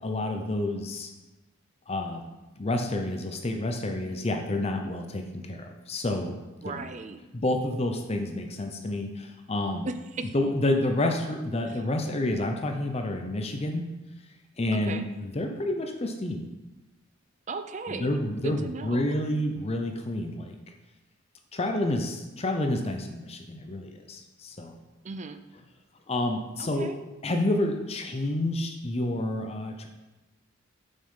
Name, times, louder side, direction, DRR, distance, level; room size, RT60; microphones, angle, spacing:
voice 1, 0.0-1.1 1.9-2.2 2.6-6.4 6.6-6.9 7.3-9.9 10.3-13.9 14.6-16.5 17.9-20.6 21.5-24.7 26.1-26.9 27.2-29.9, left 1 dB, 30° left, 4 dB, 0.6 m, -29 dB
voice 2, 6.6-7.2 9.8-10.3 11.6-11.8 14.7-15.1 17.5-19.2 25.0-25.4 26.6-27.0, right 3 dB, 35° right, 9 dB, 0.5 m, -37 dB
7.1 x 5.4 x 5.5 m, 1.1 s
head